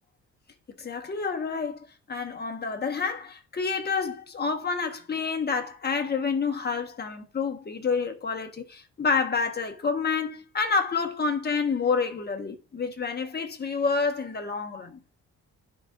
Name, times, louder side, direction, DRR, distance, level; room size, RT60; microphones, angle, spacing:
voice 1, 0.8-15.0, left 5 dB, 35° left, 1.4 m, -28 dB
10.5 x 4.1 x 2.5 m
cardioid pair, 90°, 30 cm